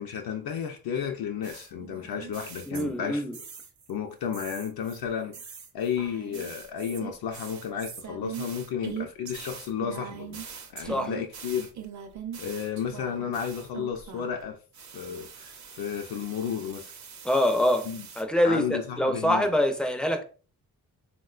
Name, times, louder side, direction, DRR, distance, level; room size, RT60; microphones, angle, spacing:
voice 1, 0.0-3.2 3.9-5.3 5.7-10.4 10.7-11.7 12.4-14.6 14.9-16.9 17.9-18.1 18.4-19.5, left 7 dB, 70° left, 0.5 m, -32 dB
sound 1, 1.4-3.0 3.3-3.9 4.3-14.4 14.7-18.2, right 8 dB, 50° right, 0.6 m, -42 dB
voice 2, 2.7-3.4 10.8-11.1 17.2-17.9 18.2-20.2, left 1 dB, ahead, 0.3 m, -25 dB
3.5 x 2.2 x 2.3 m
cardioid pair, 110°, 37 cm